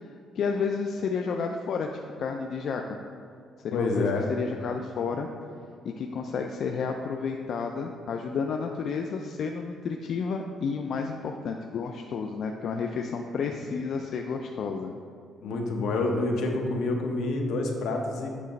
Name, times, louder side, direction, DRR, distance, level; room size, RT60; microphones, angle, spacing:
voice 1, 0.3-3.0 3.6-5.3 6.0-14.9, left 5 dB, 55° left, 3 dB, 0.4 m, -31 dB
voice 2, 3.7-4.3 15.4-18.3, left 2 dB, 80° left, 2 dB, 0.9 m, -27 dB
8.3 x 3.0 x 5.1 m, 2.4 s
cardioid pair, 130°, 0 cm